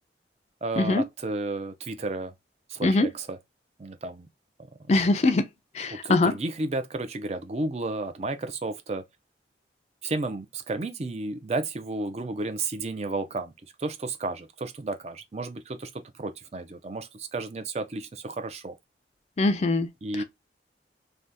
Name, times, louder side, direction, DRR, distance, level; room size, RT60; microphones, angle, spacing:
voice 1, 0.6-2.3 2.7-3.4 3.8-4.3 5.9-9.1 10.0-13.5 13.8-18.8 20.0-20.2, right 2 dB, 35° right, 0.5 m, -32 dB
voice 2, 4.9-5.4 5.7-6.3 19.4-19.9 20.2-20.3, left 2 dB, 40° left, 0.4 m, -22 dB
2.7 x 2.2 x 3.4 m
head